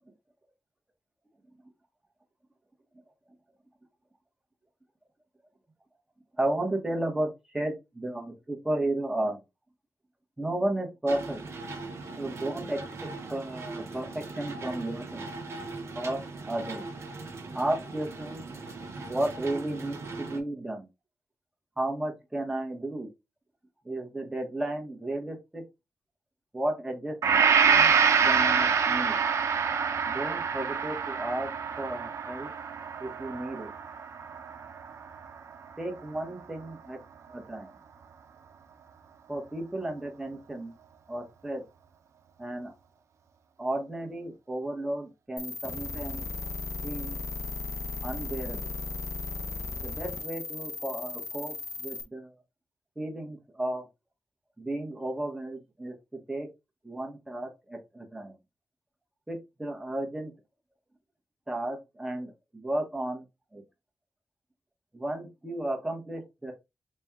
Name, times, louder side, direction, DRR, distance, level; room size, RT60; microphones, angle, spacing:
voice 1, 6.4-9.4 10.4-11.4 12.2-12.8 13.2-15.3 15.9-16.8 17.5-18.4 19.0-20.9 21.8-23.1 23.8-25.6 26.5-27.2 27.6-27.9 28.2-29.1 30.0-31.5 31.8-32.5 33.0-33.7 35.8-37.0 37.3-37.7 39.3-40.7 41.1-41.6 42.4-42.7 43.6-46.3 46.8-47.2 48.0-48.6 49.8-52.3 53.0-53.9 54.6-56.5 56.8-58.3 59.3-60.3 61.5-63.2 63.5-63.6 64.9-66.5, right 1 dB, 10° right, 2 dB, 1.0 m, -33 dB
sound 1, 11.1-20.4, right 3 dB, 60° right, 0.9 m, -40 dB
Gong, 27.2-35.3, right 6 dB, 80° right, 0.5 m, -26 dB
sound 2, 45.4-52.0, left 3 dB, 75° left, 0.8 m, -36 dB
4.2 x 2.3 x 3.5 m, 0.24 s
wide cardioid pair, 175°, 5 cm